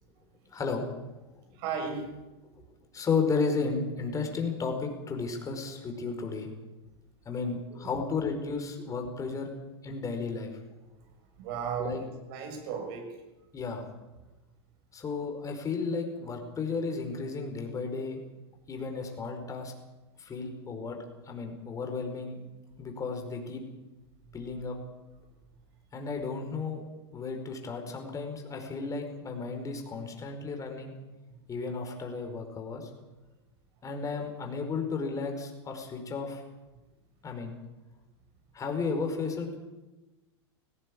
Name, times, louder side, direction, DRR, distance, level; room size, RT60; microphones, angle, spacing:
voice 1, 0.5-0.8 2.9-6.5 7.2-9.5 9.8-10.6 11.8-12.0 13.5-13.9 14.9-18.2 18.7-19.7 20.2-21.0 21.2-22.4 22.8-23.6 24.3-24.8 25.9-26.9 27.1-30.9 31.5-32.9 33.8-36.4 37.2-37.6 38.5-39.6, left 4 dB, 25° left, 3 dB, 5.1 m, -33 dB
voice 2, 1.5-2.2 7.7-8.0 10.9-11.1 11.4-13.2 31.3-31.4, right 6 dB, 60° right, 4 dB, 6.8 m, -36 dB
18.0 x 17.5 x 8.7 m, 1.1 s
hypercardioid pair, 110°, 15 cm